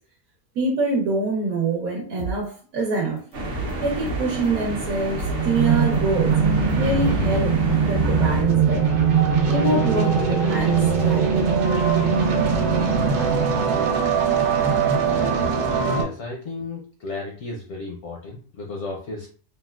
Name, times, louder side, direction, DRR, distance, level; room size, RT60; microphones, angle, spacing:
voice 1, 0.5-3.2 3.8-6.4 6.7-7.5 7.8-9.0 9.5-11.5, right 2 dB, 70° right, -2 dB, 1.2 m, -25 dB
sound 1, 2.2-2.3 2.8-3.0 3.3-4.4 4.8-4.9 5.2-5.3 5.8-6.0 6.3-6.7 7.1-7.2, right 4 dB, 85° left, 1.1 m, -31 dB
sound 2, 3.3-8.4, right 1 dB, 50° right, 0.7 m, -30 dB
sound 3, 5.3-16.0, right 6 dB, 85° right, 1.2 m, -21 dB
voice 2, 15.8-19.3, left 3 dB, 65° left, -1 dB, 0.7 m, -34 dB
3.6 x 2.1 x 2.3 m, 0.42 s
omnidirectional pair, 1.6 m